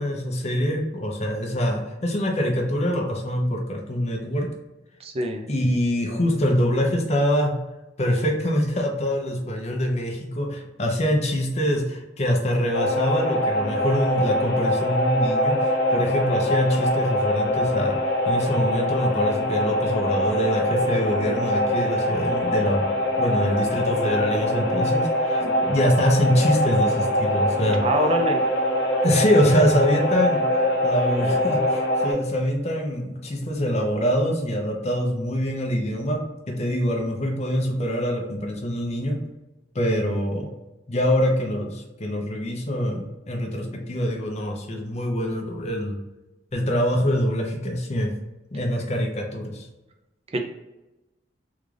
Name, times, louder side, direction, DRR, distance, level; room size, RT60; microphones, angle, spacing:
voice 1, 0.0-4.5 5.5-7.6 8.0-18.0 18.3-22.9 23.2-27.8 29.0-39.2 39.7-40.5 40.9-46.0 46.5-48.1 48.5-49.7, equal, 40° left, 1 dB, 0.7 m, -24 dB
voice 2, 5.0-5.5 25.4-25.7 27.7-28.4 50.3-50.5, right 1 dB, 35° right, 3 dB, 0.4 m, -25 dB
sound 1, 12.7-32.1, left 1 dB, 75° left, 0.8 m, -23 dB
3.7 x 2.4 x 3.2 m, 1.0 s
head